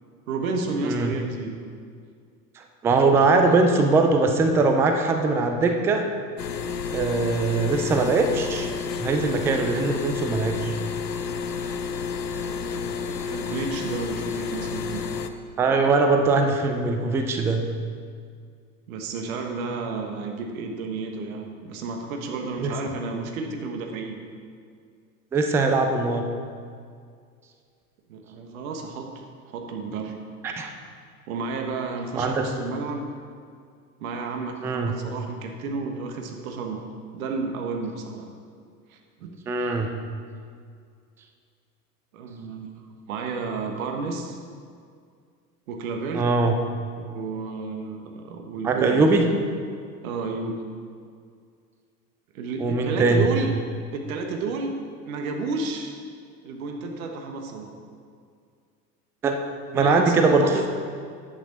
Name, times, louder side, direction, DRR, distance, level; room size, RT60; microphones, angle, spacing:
voice 1, 0.3-1.6 12.4-12.9 13.3-15.1 18.9-24.2 28.1-29.1 29.4-30.2 31.3-33.0 34.0-36.8 37.1-38.3 38.9-39.8 42.1-44.4 45.7-46.3 47.0-49.1 50.0-50.6 52.3-53.5 53.9-54.8 55.1-56.0 56.4-57.7 59.7-60.7, right 4 dB, 60° right, 3 dB, 1.5 m, -31 dB
voice 2, 0.8-1.1 2.6-6.1 6.9-8.7 9.0-10.7 15.6-17.6 22.6-22.8 25.3-26.3 30.4-30.7 32.2-32.5 34.6-34.9 39.5-39.9 46.1-46.6 48.6-49.3 52.6-53.3 59.2-59.4 59.7-60.5, right 3 dB, 5° right, 5 dB, 0.3 m, -21 dB
sound 1, 6.4-15.3, left 5 dB, 85° left, 0.7 m, -30 dB
10.0 x 8.5 x 4.0 m, 2.2 s
figure-of-eight pair, 85°, 48 cm